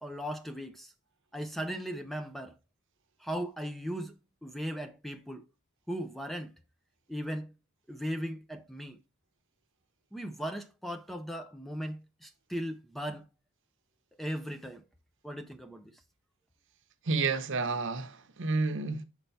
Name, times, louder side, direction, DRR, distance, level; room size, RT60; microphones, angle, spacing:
voice 1, 0.0-0.9 1.3-2.6 3.2-5.4 5.9-6.5 7.1-7.5 7.9-9.0 10.1-13.3 14.2-14.8 15.2-15.9, equal, ahead, 0.5 m, -37 dB
voice 2, 17.0-19.0, right 3 dB, 60° right, 0.8 m, -30 dB
5.8 x 4.4 x 4.0 m
head